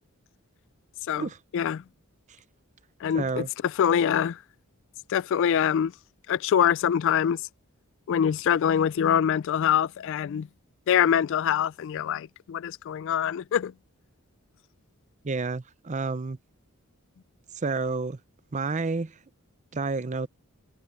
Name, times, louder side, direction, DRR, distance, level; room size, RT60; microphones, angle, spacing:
voice 1, 1.5-1.8 3.0-4.4 5.1-5.9 6.3-7.4 8.1-10.5 10.9-13.7, left 8 dB, 60° left, 0.3 m, -24 dB
voice 2, 3.1-3.5 15.2-16.4 17.6-18.2 18.5-19.1 19.7-20.3, right 3 dB, 35° right, 0.6 m, -29 dB
head